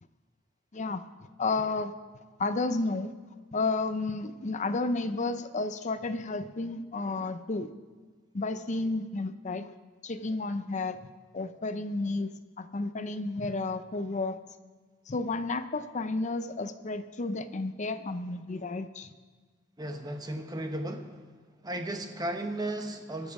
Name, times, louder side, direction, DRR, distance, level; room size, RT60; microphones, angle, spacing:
voice 1, 0.7-1.0 1.4-1.9 2.4-3.1 3.5-7.7 8.3-9.7 10.0-11.0 11.3-14.4 15.1-19.1, left 3 dB, 40° left, 11 dB, 0.6 m, -32 dB
voice 2, 19.8-21.3 21.6-23.3, right 1 dB, 20° right, 5 dB, 1.0 m, -35 dB
22.0 x 7.5 x 4.8 m, 1.4 s
head